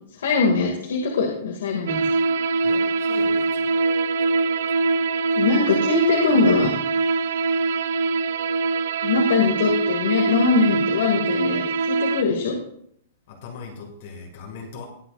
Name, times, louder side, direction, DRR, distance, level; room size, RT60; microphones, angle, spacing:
voice 1, 0.2-2.0 5.3-6.7 9.0-12.5, left 4 dB, 85° left, 0 dB, 2.3 m, -21 dB
sound 1, 1.9-12.2, right 4 dB, 65° right, 0.5 m, -23 dB
voice 2, 2.6-3.7 13.3-14.9, left 4 dB, 45° left, 2 dB, 2.2 m, -39 dB
21.0 x 7.7 x 2.6 m, 0.68 s
hypercardioid pair, 165°, 0 cm